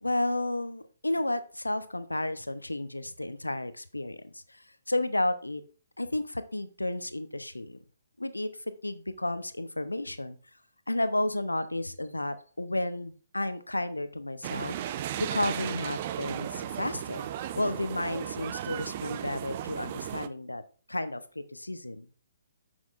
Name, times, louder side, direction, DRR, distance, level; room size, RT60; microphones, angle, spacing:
voice 1, 0.0-5.6 6.0-7.8 8.2-8.5 8.8-10.4 10.9-17.3 17.6-20.6 20.9-22.1, left 1 dB, 80° left, 12 dB, 0.7 m, -32 dB
sound 1, 14.4-20.3, right 11 dB, 35° right, 0.5 m, -35 dB
9.3 x 6.3 x 2.5 m, 0.39 s
figure-of-eight pair, 130°, 0 cm